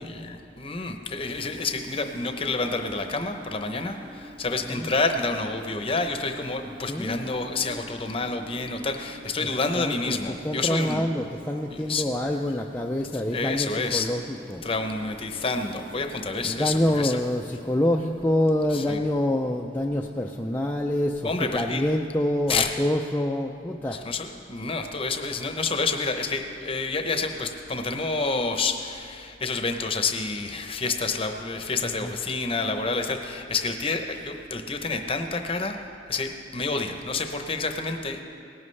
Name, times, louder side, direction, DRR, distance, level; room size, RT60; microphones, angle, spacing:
voice 1, 0.0-11.0 11.7-12.1 13.3-14.1 14.6-17.2 18.7-19.0 21.2-21.8 22.5-22.7 23.9-35.8 36.1-38.2, left 3 dB, 30° left, 6 dB, 0.7 m, -29 dB
Train / Subway metro underground, 1.3-20.7, equal, 25° right, 0.7 m, -46 dB
voice 2, 6.9-7.3 9.4-9.5 9.7-14.6 16.4-24.0 31.8-32.1, left 1 dB, 10° left, 0 dB, 0.3 m, -26 dB
18.5 x 10.5 x 3.3 m, 2.5 s
head